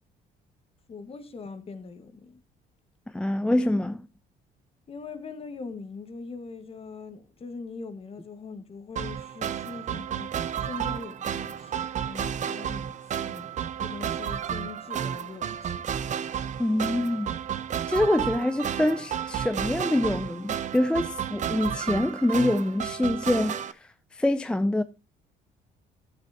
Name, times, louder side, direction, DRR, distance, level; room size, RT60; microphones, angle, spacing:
voice 1, 0.9-2.4 4.9-13.0 13.2-13.5 13.8-16.0, left 4 dB, 35° left, 1.6 m, -41 dB
voice 2, 3.1-4.1 16.6-17.3 17.9-24.8, left 1 dB, 5° left, 0.4 m, -25 dB
sound 1, 9.0-23.7, right 9 dB, 45° right, 0.8 m, -32 dB
12.5 x 7.5 x 2.9 m
cardioid pair, 110°, 17 cm